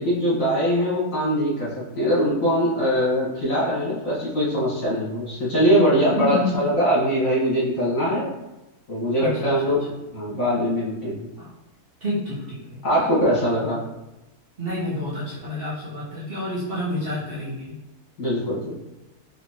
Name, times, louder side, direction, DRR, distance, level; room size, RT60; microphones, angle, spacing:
voice 1, 0.0-8.3 8.9-9.8 10.1-11.2 12.8-13.8 18.2-18.6, equal, 60° left, -8 dB, 2.1 m, -22 dB
voice 2, 6.1-6.7 9.2-9.7 11.4-11.5 12.0-12.8 14.6-17.7, left 1 dB, 45° right, -8 dB, 1.1 m, -29 dB
4.3 x 3.2 x 2.8 m, 0.98 s
omnidirectional pair, 1.6 m